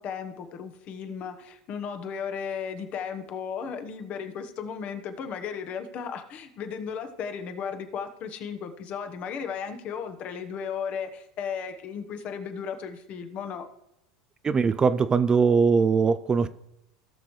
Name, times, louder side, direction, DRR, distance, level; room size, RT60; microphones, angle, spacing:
voice 1, 0.0-13.7, left 7 dB, 45° left, 8 dB, 1.1 m, -35 dB
voice 2, 14.4-16.5, right 5 dB, 25° right, 14 dB, 0.4 m, -21 dB
17.0 x 6.2 x 3.2 m, 0.82 s
hypercardioid pair, 95°, 3 cm